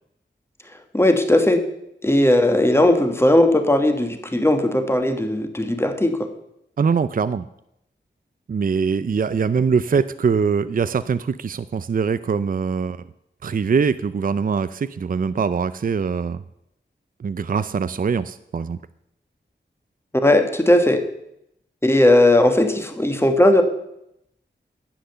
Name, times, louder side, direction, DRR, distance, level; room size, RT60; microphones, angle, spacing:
voice 1, 0.9-1.6 2.0-6.3 20.2-21.0 21.8-23.6, left 1 dB, 15° left, 6 dB, 1.5 m, -17 dB
voice 2, 6.8-7.4 8.5-13.0 13.4-16.4 17.2-18.8, right 5 dB, 45° right, 14 dB, 0.4 m, -22 dB
10.0 x 7.7 x 6.8 m, 0.80 s
wide cardioid pair, 60°, 19 cm